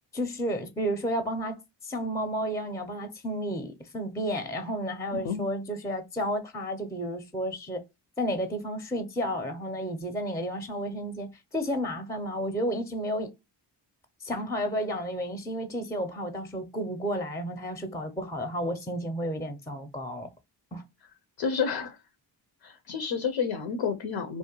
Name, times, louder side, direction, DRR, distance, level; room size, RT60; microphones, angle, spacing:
voice 1, 0.1-1.6 1.8-7.8 8.2-13.3 14.2-20.3 20.7-20.8, equal, 5° left, 0.5 m, -32 dB
voice 2, 21.4-22.0 22.6-24.4, left 6 dB, 80° left, 0.6 m, -30 dB
2.6 x 2.1 x 2.8 m
cardioid pair, 60°, 46 cm